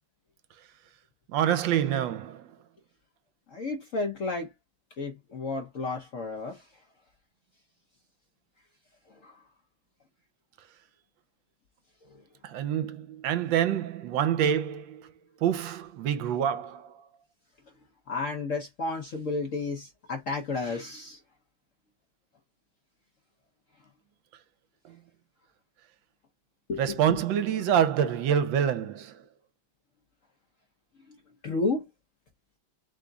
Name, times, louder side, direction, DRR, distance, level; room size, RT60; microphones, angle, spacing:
voice 1, 1.3-2.5 12.4-15.1 15.4-16.9 24.8-25.0 26.8-29.2, right 9 dB, 75° right, 1.3 m, -26 dB
voice 2, 3.5-4.5 5.0-6.7 9.2-9.4 18.1-21.2 26.7-27.2 31.1-31.2 31.4-31.8, left 3 dB, 55° left, 0.9 m, -32 dB
3.6 x 3.5 x 3.8 m
omnidirectional pair, 2.2 m